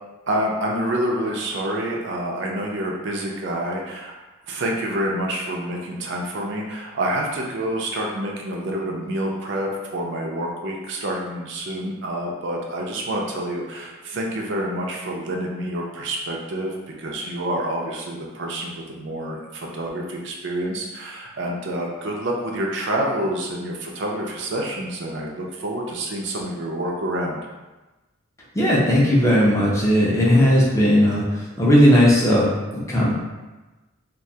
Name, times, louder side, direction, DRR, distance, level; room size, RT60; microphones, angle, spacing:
voice 1, 0.3-4.1 4.5-27.5, right 1 dB, 55° right, -1 dB, 0.4 m, -27 dB
voice 2, 28.5-31.2 31.6-32.5 32.7-33.1, equal, 15° left, -6 dB, 0.4 m, -16 dB
2.3 x 2.2 x 2.7 m, 1.1 s
head